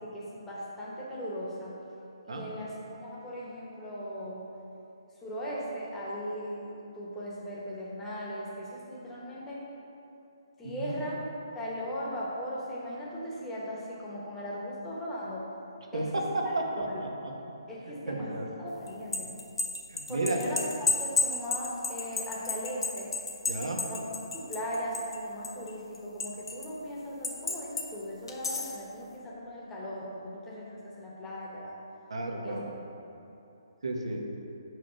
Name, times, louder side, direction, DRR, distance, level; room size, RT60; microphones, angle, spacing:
voice 1, 0.0-1.8 2.2-4.5 5.2-9.6 10.6-11.2 11.5-15.4 15.9-16.2 16.7-17.0 17.7-19.3 20.1-23.1 23.7-24.0 24.3-31.8 32.4-32.6, equal, 10° left, -6 dB, 1.1 m, -38 dB
voice 2, 10.6-10.9 15.9-16.9 18.1-18.5 20.1-20.4 23.5-23.8 32.1-32.7 33.8-34.2, right 2 dB, 85° right, 0 dB, 1.1 m, -32 dB
sound 1, 18.9-25.2 25.4-26.7 27.2-27.9 28.3-28.8, left 4 dB, 65° left, 0.9 m, -31 dB
6.0 x 4.8 x 5.1 m, 3.0 s
hypercardioid pair, 155°, 3 cm